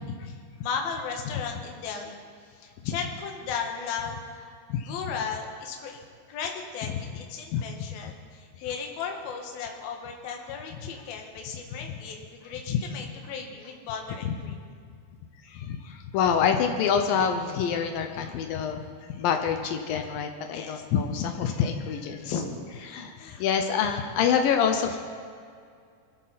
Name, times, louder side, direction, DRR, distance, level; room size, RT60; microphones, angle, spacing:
voice 1, 0.2-6.0 6.3-14.7 16.1-16.2 18.2-18.3 20.0-20.1 20.5-20.8 22.2-22.6 23.2-23.5, left 6 dB, 60° left, 2 dB, 3.2 m, -36 dB
voice 2, 15.4-18.8 19.1-22.3 22.9-25.0, left 7 dB, 80° left, 5 dB, 2.0 m, -26 dB
23.5 x 14.0 x 4.2 m, 2.3 s
omnidirectional pair, 5.3 m